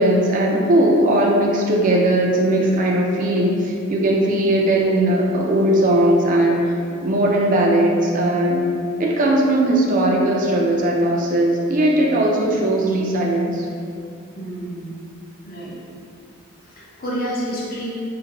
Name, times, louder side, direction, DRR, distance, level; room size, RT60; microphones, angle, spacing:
voice 1, 0.0-6.6 7.0-8.7 9.0-13.6, right 1 dB, 40° right, -1 dB, 0.3 m, -18 dB
voice 2, 14.3-14.9 15.4-15.7 16.6-17.9, right 1 dB, 45° left, -6 dB, 0.6 m, -29 dB
2.5 x 2.2 x 2.8 m, 2.4 s
head